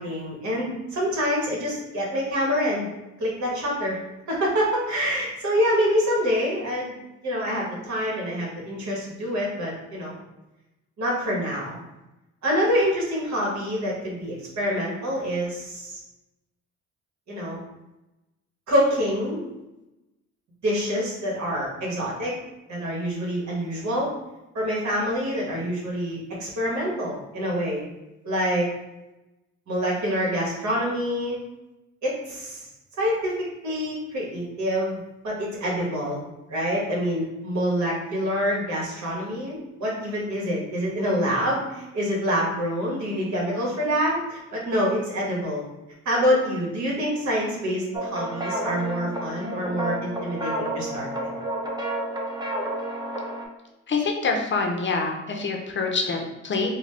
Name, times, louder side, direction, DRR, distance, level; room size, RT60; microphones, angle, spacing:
voice 1, 0.0-2.9 3.2-4.0 4.3-6.9 7.2-10.1 11.0-11.8 12.4-16.0 17.3-17.6 18.7-19.4 20.6-22.3 22.7-24.1 24.5-27.8 28.2-28.7 29.7-31.4 32.0-32.6 33.0-36.2 36.5-45.7 46.0-51.3, equal, 65° right, -4 dB, 1.5 m, -26 dB
sound 1, 47.9-53.5, right 1 dB, 15° right, 0.7 m, -30 dB
voice 2, 53.9-56.7, left 4 dB, 40° left, 2 dB, 0.7 m, -26 dB
3.7 x 2.2 x 3.3 m, 0.99 s
cardioid pair, 90°, 30 cm